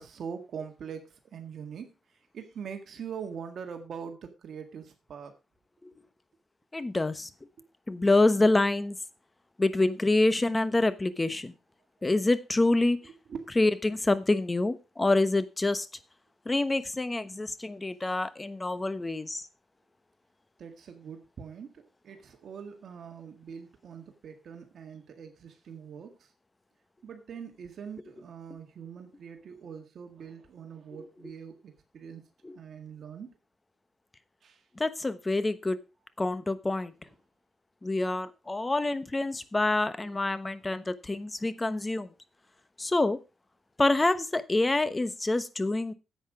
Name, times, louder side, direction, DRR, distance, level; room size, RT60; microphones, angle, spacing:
voice 1, 0.0-1.9 2.3-5.3 13.3-13.5 18.1-18.2 20.6-26.3 27.0-32.2 32.5-33.3 34.4-34.6, right 7 dB, 65° right, 6 dB, 1.7 m, -43 dB
voice 2, 6.7-7.3 7.9-9.0 9.6-11.5 12.0-13.0 13.6-15.9 16.4-19.5 32.4-32.6 34.7-35.8 36.2-36.9 37.8-42.1 42.8-43.2 43.8-45.9, left 2 dB, 20° left, 13 dB, 1.0 m, -26 dB
10.5 x 8.1 x 4.9 m, 0.29 s
cardioid pair, 100°, 0 cm